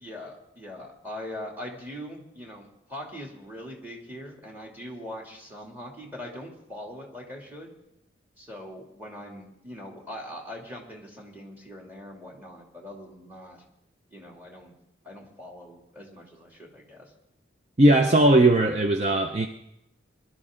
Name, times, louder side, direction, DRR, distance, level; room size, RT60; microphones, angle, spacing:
voice 1, 0.0-2.6 2.9-7.7 8.4-13.6 14.1-14.7 15.0-17.1, left 1 dB, 10° right, 0 dB, 2.7 m, -41 dB
voice 2, 17.8-19.5, right 1 dB, 35° right, 6 dB, 0.6 m, -18 dB
22.5 x 12.0 x 3.8 m, 0.83 s
head